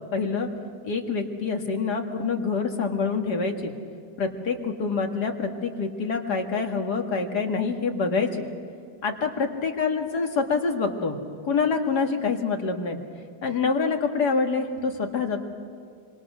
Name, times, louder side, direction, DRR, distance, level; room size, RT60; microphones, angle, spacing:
voice 1, 0.1-0.5 0.8-3.7 4.2-8.5 9.0-11.2 11.4-13.0 13.4-15.4, left 4 dB, 85° left, 3 dB, 2.6 m, -26 dB
26.0 x 26.0 x 6.2 m, 2.3 s
omnidirectional pair, 1.7 m